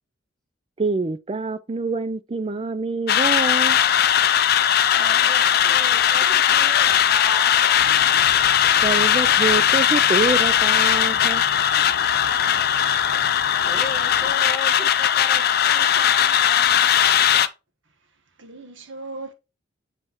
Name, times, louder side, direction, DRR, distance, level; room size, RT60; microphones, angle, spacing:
voice 1, 0.8-3.8 8.8-11.4, right 3 dB, 30° right, 0.4 m, -26 dB
sound 1, 3.1-17.5, left 9 dB, 50° left, 0.4 m, -18 dB
voice 2, 4.9-8.0 13.6-16.9, left 1 dB, ahead, 1.6 m, -37 dB
sound 2, 7.8-14.3, left 3 dB, 65° left, 0.9 m, -40 dB
voice 3, 17.8-19.3, right 2 dB, 65° right, 1.4 m, -39 dB
7.7 x 4.4 x 3.0 m
head